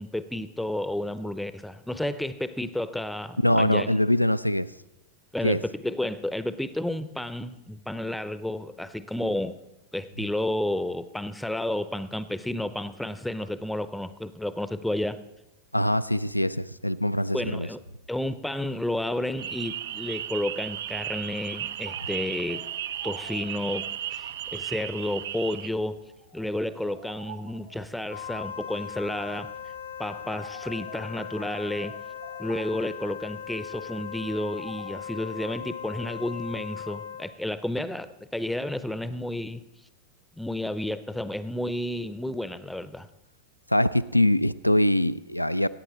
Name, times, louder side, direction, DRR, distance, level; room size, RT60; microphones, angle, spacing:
voice 1, 0.0-3.9 5.3-9.6 9.9-15.2 17.3-17.8 18.1-22.6 23.0-26.0 26.3-29.5 30.0-32.0 32.4-39.6 40.4-43.1, left 1 dB, 5° left, 14 dB, 0.6 m, -31 dB
voice 2, 3.4-4.7 5.4-5.6 15.7-17.7 43.7-45.7, left 1 dB, 90° left, 15 dB, 0.3 m, -23 dB
sound 1, 19.4-25.7, right 11 dB, 60° right, 0.3 m, -35 dB
sound 2, 21.2-35.6, right 4 dB, 75° right, 1.6 m, -50 dB
Wind instrument woodwind instrument, 28.1-37.4, left 8 dB, 70° left, 0.9 m, -39 dB
17.0 x 8.8 x 4.2 m, 0.96 s
figure-of-eight pair, 90°, 0 cm